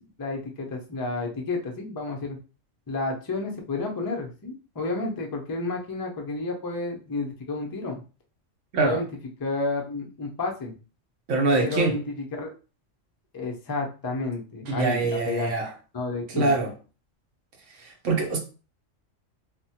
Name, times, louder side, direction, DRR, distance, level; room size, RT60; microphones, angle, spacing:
voice 1, 0.2-2.4 2.9-8.0 8.8-9.1 9.4-10.8 11.6-12.5 13.3-15.5 15.9-16.5, left 3 dB, 35° left, 0.3 m, -31 dB
voice 2, 11.3-11.9 14.7-15.7 16.3-16.7 17.8-18.4, right 3 dB, 70° right, 1.1 m, -24 dB
3.4 x 2.1 x 2.8 m
omnidirectional pair, 1.3 m